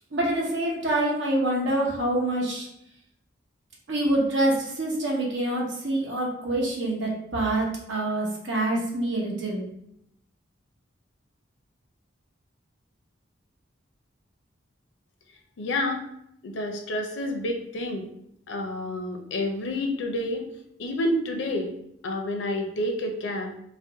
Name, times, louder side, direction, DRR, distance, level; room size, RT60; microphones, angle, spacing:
voice 1, 0.1-2.7 3.9-9.6, right 1 dB, 75° right, -2 dB, 0.8 m, -26 dB
voice 2, 15.6-16.0 16.4-18.1 18.5-20.5 20.8-21.7 22.0-23.5, left 1 dB, 75° left, 3 dB, 0.5 m, -29 dB
2.5 x 2.1 x 3.7 m, 0.74 s
head